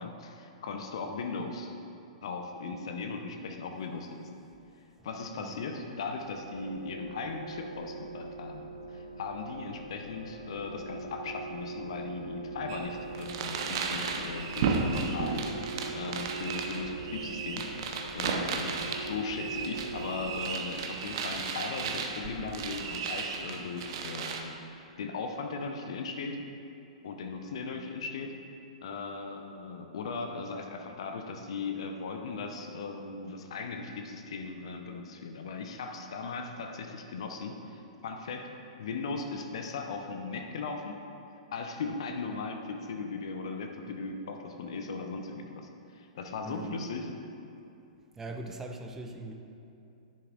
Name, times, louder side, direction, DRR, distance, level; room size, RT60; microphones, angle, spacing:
voice 1, 0.0-1.8 2.2-4.4 5.0-17.7 18.1-26.4 27.0-28.3 28.8-38.5 38.8-41.0 41.5-47.1, left 4 dB, 55° left, 4 dB, 0.8 m, -38 dB
voice 2, 5.0-5.6 46.5-46.8 48.1-49.3, right 2 dB, 10° right, 4 dB, 0.7 m, -41 dB
sound 1, 5.8-20.4, right 2 dB, 90° left, 0.7 m, -42 dB
sound 2, 12.7-24.4, right 5 dB, 45° right, 0.8 m, -34 dB
10.5 x 10.0 x 2.5 m, 2.7 s
figure-of-eight pair, 105°, 4 cm